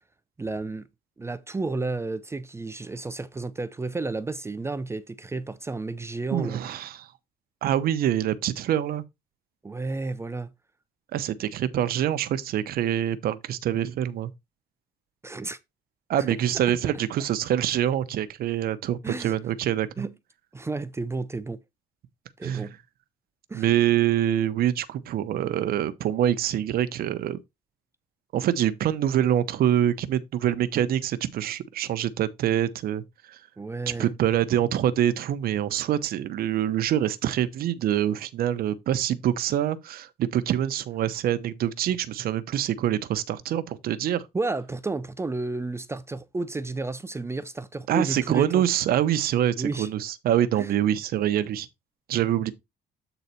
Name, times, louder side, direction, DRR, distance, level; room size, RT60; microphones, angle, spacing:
voice 1, 0.4-0.8 1.2-6.6 9.6-10.5 15.2-15.6 16.2-16.3 19.0-19.3 20.0-20.1 20.5-21.6 22.4-22.8 23.5-23.7 33.6-34.1 44.3-48.6 49.6-49.9 50.6-50.7, right 3 dB, 15° right, 0.5 m, -32 dB
voice 2, 6.3-7.1 7.6-9.0 11.1-14.3 16.1-20.0 22.4-22.7 23.5-27.4 28.3-33.0 33.3-33.4 34.0-44.3 47.9-51.7 52.1-52.5, right 11 dB, 65° right, 0.9 m, -25 dB
8.1 x 4.0 x 4.2 m
cardioid pair, 110°, 17 cm